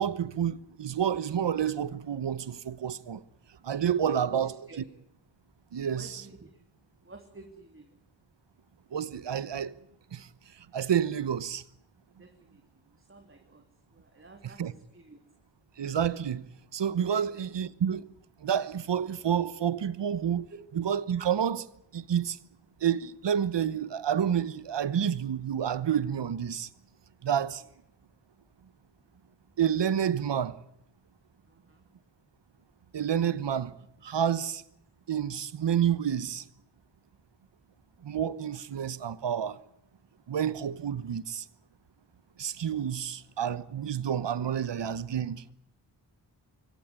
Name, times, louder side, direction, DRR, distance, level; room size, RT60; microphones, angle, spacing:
voice 1, 0.0-3.2 3.6-4.5 5.7-6.2 8.9-9.7 10.1-10.3 10.7-11.6 14.6-14.7 15.8-16.5 16.7-18.1 18.4-20.5 20.8-21.7 21.9-22.4 22.8-26.7 27.2-27.6 29.6-30.6 32.9-33.7 34.0-34.6 35.1-36.4 38.0-39.6 40.3-41.4 42.4-45.4, right 8 dB, 75° right, 1.2 m, -29 dB
voice 2, 4.0-4.8 5.9-6.6 7.0-8.0 12.2-15.2 17.1-17.5 20.5-20.6 31.5-31.8, right 3 dB, 30° right, 3.0 m, -50 dB
24.5 x 16.5 x 9.7 m
cardioid pair, 70°, 43 cm